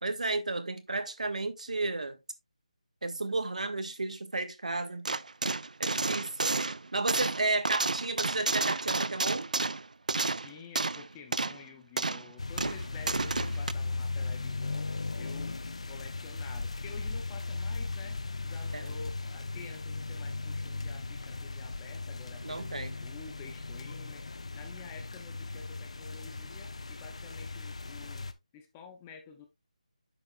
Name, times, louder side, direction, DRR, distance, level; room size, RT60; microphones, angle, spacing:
voice 1, 0.0-2.2 3.0-5.1 5.8-6.6 6.9-9.5 18.7-18.9 22.4-22.9, right 3 dB, 70° right, 1.5 m, -33 dB
sound 1, 5.0-11.1 11.3-11.6 12.0-12.3 12.6-13.7, right 3 dB, 85° right, 0.5 m, -31 dB
voice 2, 10.4-15.6 15.9-29.5, left 6 dB, 10° left, 0.6 m, -50 dB
raining over pavement ambience from a second floor balcony, 12.4-28.3, left 3 dB, 55° left, 0.8 m, -37 dB
9.7 x 7.0 x 2.3 m
figure-of-eight pair, 175°, 4 cm